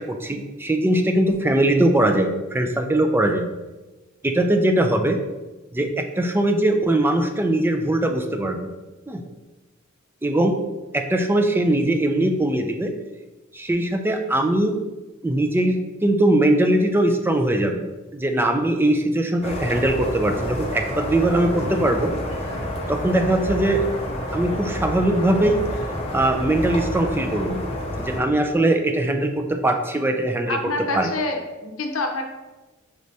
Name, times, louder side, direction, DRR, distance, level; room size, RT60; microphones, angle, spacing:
voice 1, 0.0-3.5 4.2-5.2 5.7-8.7 9.1-9.2 10.2-10.6 10.9-12.9 13.5-14.8 15.2-17.8 18.1-22.1 22.9-23.9 24.3-25.6 26.1-27.6 28.0-30.6 30.9-31.1, right 1 dB, 10° right, 5 dB, 0.3 m, -21 dB
sound 1, 19.4-28.2, left 1 dB, 30° left, 0.7 m, -29 dB
voice 2, 30.5-32.2, left 2 dB, 70° left, 3 dB, 0.7 m, -27 dB
6.0 x 3.2 x 2.7 m, 1.2 s
head